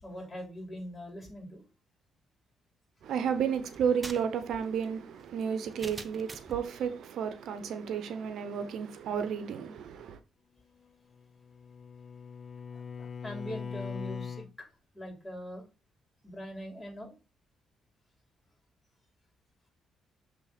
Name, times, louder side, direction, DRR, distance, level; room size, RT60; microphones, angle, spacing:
voice 1, 0.0-1.6 12.7-14.4 14.9-15.6 16.2-17.1, equal, 20° left, 3.2 m, -42 dB
voice 2, 3.0-10.2, right 7 dB, 75° right, 0.8 m, -32 dB
sound 1, 3.7-6.6, right 3 dB, 25° right, 0.7 m, -46 dB
Bowed string instrument, 11.1-14.5, left 6 dB, 40° left, 0.6 m, -41 dB
7.2 x 3.5 x 4.1 m
cardioid pair, 90°, 0 cm